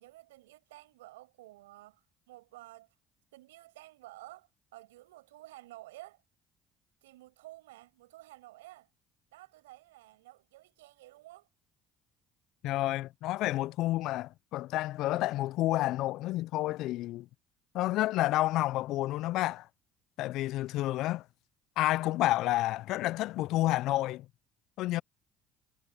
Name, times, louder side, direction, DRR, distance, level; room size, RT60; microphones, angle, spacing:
voice 1, 0.0-3.0 3.3-6.2 7.0-8.9 9.3-11.5, right 17 dB, 85° right, 5.9 m, -52 dB
voice 2, 12.6-17.3 17.7-19.7 20.2-21.2 21.8-24.3 24.8-25.0, left 16 dB, 65° left, 0.4 m, -30 dB
hypercardioid pair, 60°, 0 cm